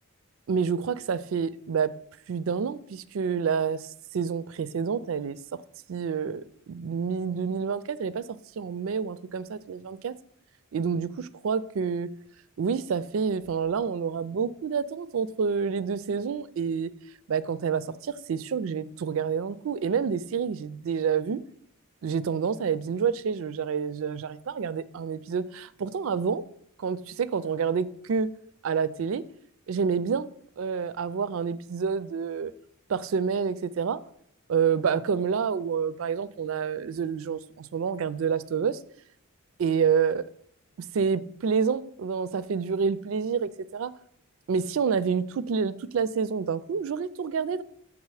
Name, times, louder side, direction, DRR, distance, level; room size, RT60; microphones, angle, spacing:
voice 1, 0.5-1.9 2.3-3.9 4.1-5.4 5.9-10.1 10.7-12.1 12.6-16.9 17.3-21.4 22.0-26.4 26.8-28.3 28.6-29.2 29.7-30.3 30.6-32.5 32.9-34.0 34.5-38.8 39.6-40.3 40.9-43.9 44.5-47.6, right 6 dB, 65° right, 0.4 m, -28 dB
7.5 x 3.6 x 4.8 m
head